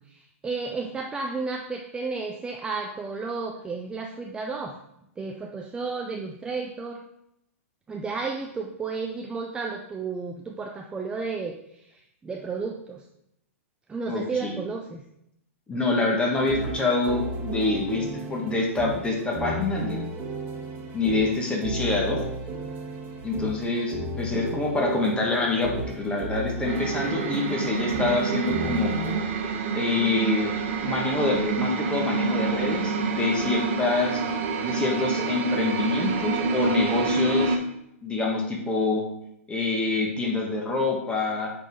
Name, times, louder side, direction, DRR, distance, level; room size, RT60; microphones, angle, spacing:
voice 1, 0.1-4.8 5.2-7.0 7.9-13.0 13.9-15.0 24.3-24.4, right 4 dB, 10° right, 2 dB, 0.5 m, -32 dB
voice 2, 14.1-14.6 15.7-20.0 20.9-22.2 23.2-28.9 29.7-30.5 30.8-34.2 34.6-37.6 38.0-39.0 39.5-41.5, left 3 dB, 15° left, -1 dB, 1.6 m, -26 dB
sound 1, 16.3-29.2, right 2 dB, 25° right, 1.5 m, -34 dB
sound 2, 26.7-37.6, right 4 dB, 55° right, 1.1 m, -27 dB
8.1 x 4.2 x 3.6 m, 0.78 s
hypercardioid pair, 120°, 8 cm